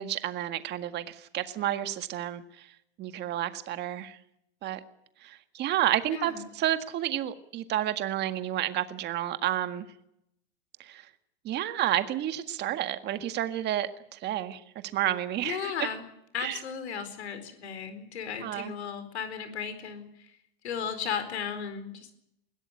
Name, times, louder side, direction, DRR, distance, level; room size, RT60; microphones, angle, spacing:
voice 1, 0.0-2.7 3.0-4.2 4.6-4.8 5.2-9.9 10.8-11.0 11.4-14.6 14.9-15.9 16.4-16.6 18.4-18.7, right 12 dB, 30° right, 9 dB, 1.8 m, -30 dB
voice 2, 6.1-6.4 15.4-16.0 16.3-20.1 20.6-22.1, left 7 dB, 85° left, 10 dB, 4.5 m, -35 dB
21.5 x 16.5 x 9.8 m, 0.79 s
hypercardioid pair, 130°, 32 cm